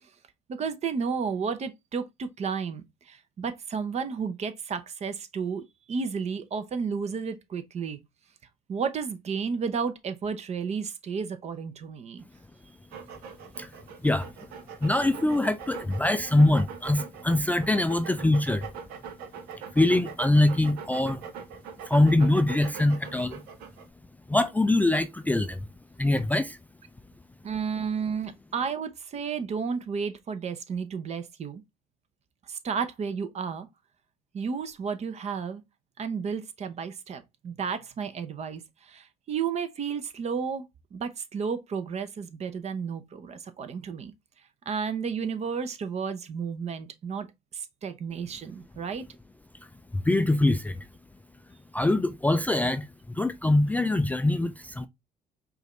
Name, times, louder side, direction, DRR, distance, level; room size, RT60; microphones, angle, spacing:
voice 1, 0.5-8.0 8.7-12.2 27.4-31.6 32.5-33.7 34.3-35.6 36.0-44.1 44.7-47.3 47.5-49.0, right 6 dB, 45° right, 0.8 m, -32 dB
sound 1, 12.9-23.9, right 7 dB, 80° right, 0.8 m, -42 dB
voice 2, 14.8-18.7 19.7-21.2 21.9-23.4 24.3-25.6 26.0-26.6 49.9-50.9 51.7-54.9, left 2 dB, 10° left, 0.3 m, -23 dB
4.9 x 2.6 x 3.1 m
cardioid pair, 95°, 16 cm